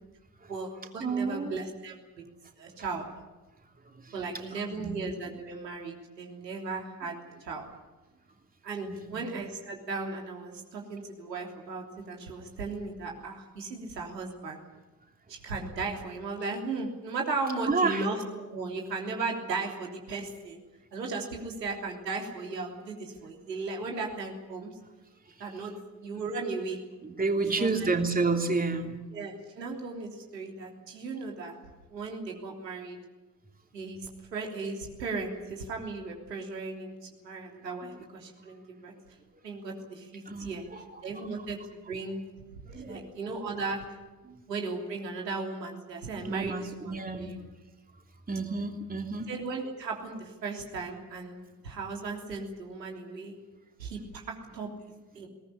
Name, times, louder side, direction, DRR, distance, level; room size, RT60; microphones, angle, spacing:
voice 1, 0.5-2.0 2.6-3.1 4.1-7.7 8.6-14.6 15.3-20.6 20.9-24.7 25.4-25.7 26.0-26.8 27.6-27.9 29.1-31.6 31.9-33.0 33.7-34.0 34.3-36.9 37.2-38.9 39.4-40.6 41.0-42.2 42.7-43.8 44.5-47.4 49.3-53.4 53.8-54.7 55.2-55.3, right 3 dB, 85° right, 1 dB, 3.4 m, -36 dB
voice 2, 1.0-1.6 3.9-4.1 4.5-5.0 8.9-9.2 17.7-18.0 25.3-25.7 27.0-29.0 40.3-41.1 42.7-43.1 44.2-44.3 46.2-47.4 48.3-49.3, right 3 dB, 15° right, 4 dB, 2.9 m, -30 dB
21.0 x 19.0 x 10.0 m, 1.2 s
figure-of-eight pair, 55°, 48 cm